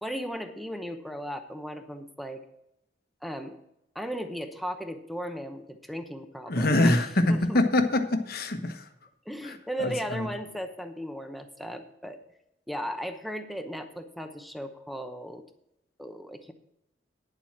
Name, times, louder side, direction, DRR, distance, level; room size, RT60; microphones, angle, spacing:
voice 1, 0.0-2.4 3.2-3.6 3.9-7.0 7.3-7.6 9.3-12.2 12.7-15.4 16.0-16.5, equal, ahead, 6 dB, 0.8 m, -36 dB
voice 2, 6.5-8.9 9.4-10.3, left 1 dB, 55° left, 7 dB, 1.1 m, -25 dB
10.0 x 7.4 x 5.9 m, 0.81 s
head